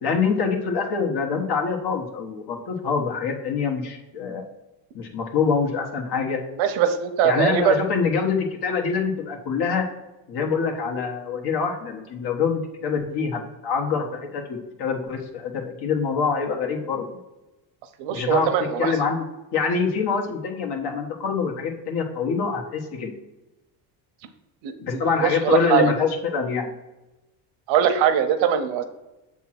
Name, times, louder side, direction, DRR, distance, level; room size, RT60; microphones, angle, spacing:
voice 1, 0.0-4.4 4.9-6.4 7.2-9.8 10.3-17.2 18.1-18.5 18.8-19.2 19.5-23.1 24.8-26.7, left 5 dB, 55° left, 2 dB, 1.5 m, -25 dB
voice 2, 6.6-7.8 18.0-18.9 24.6-25.9 27.7-28.8, right 8 dB, 85° right, 8 dB, 1.0 m, -21 dB
7.5 x 3.6 x 5.9 m, 1.0 s
cardioid pair, 150°, 45 cm